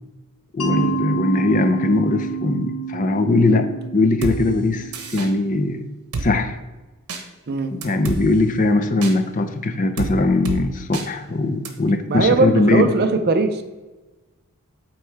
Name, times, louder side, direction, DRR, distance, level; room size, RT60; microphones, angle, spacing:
voice 1, 0.5-4.9 5.1-5.8 6.2-6.5 7.7-12.9, left 2 dB, 35° left, 8 dB, 0.5 m, -20 dB
Mallet percussion, 0.6-5.4, right 4 dB, 85° left, 1.0 m, -29 dB
Drum kit, 4.2-4.4 4.9-5.3 6.1-6.3 7.1-7.2 7.8-8.2 9.0-9.1 10.0-10.1 10.5-10.6 10.9-11.1 11.7-11.8, right 3 dB, 85° right, 0.9 m, -27 dB
voice 2, 12.1-13.6, right 3 dB, 45° right, 7 dB, 0.5 m, -20 dB
8.1 x 3.2 x 4.6 m, 1.2 s
head